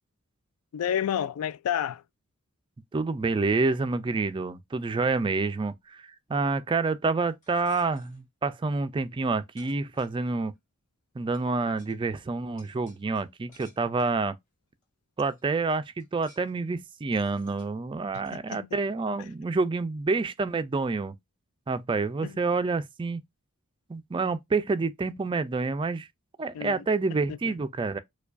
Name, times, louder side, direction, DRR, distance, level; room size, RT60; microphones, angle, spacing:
voice 1, 0.7-2.0 18.5-18.7 22.2-22.3 26.5-26.8 27.3-27.5, left 9 dB, 75° left, 0.3 m, -30 dB
voice 2, 2.9-10.5 11.2-14.4 15.2-21.2 21.7-23.2 23.9-26.1 26.4-28.0, right 3 dB, 20° right, 0.3 m, -28 dB
sound 1, 7.3-8.2 9.1-9.2 9.6-10.6 11.3-11.5 11.8-12.0 12.6-14.2 14.8-14.9 15.2-15.4 15.7-16.6 17.1-17.7 18.2-18.4, left 1 dB, 35° left, 1.9 m, -58 dB
4.6 x 2.3 x 2.5 m
head